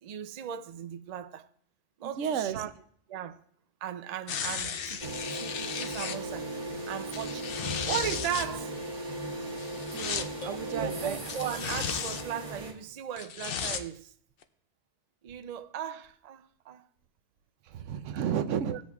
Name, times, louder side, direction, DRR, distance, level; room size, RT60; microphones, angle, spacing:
voice 1, 0.0-1.5 2.0-2.7 3.1-3.4 3.8-5.0 5.3-6.5 6.9-7.6 7.9-8.7 10.7-14.1 15.2-16.9 18.1-18.8, right 9 dB, 65° right, 0.4 m, -37 dB
voice 2, 2.0-2.6 5.0-5.2 9.9-11.2 17.6-18.8, right 8 dB, 85° right, 1.0 m, -33 dB
sound 1, 4.3-6.2 7.0-8.5 9.6-10.3 11.3-12.3 13.2-13.8 14.4-14.5, left 7 dB, 60° left, 0.7 m, -35 dB
sound 2, 5.0-12.7, right 1 dB, 30° right, 1.9 m, -37 dB
sound 3, 10.4-11.9, left 1 dB, 75° left, 1.6 m, -46 dB
19.5 x 8.1 x 2.3 m
omnidirectional pair, 1.2 m